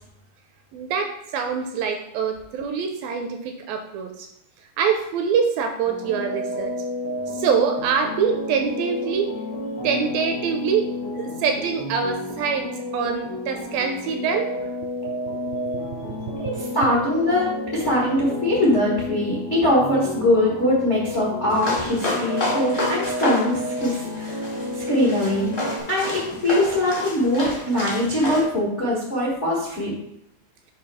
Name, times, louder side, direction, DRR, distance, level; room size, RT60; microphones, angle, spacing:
voice 1, 0.7-4.3 4.8-6.7 7.3-9.3 9.8-10.9 11.2-14.5 15.7-16.2, right 6 dB, 80° right, 5 dB, 2.2 m, -25 dB
sound 1, 5.8-25.8, left 1 dB, 60° left, 1.2 m, -31 dB
voice 2, 16.4-24.4 24.7-25.5 25.9-29.9, left 1 dB, 85° left, -6 dB, 0.6 m, -22 dB
sound 2, 21.5-28.4, left 1 dB, 45° left, 0.6 m, -30 dB
8.6 x 3.1 x 5.6 m, 0.78 s
omnidirectional pair, 4.6 m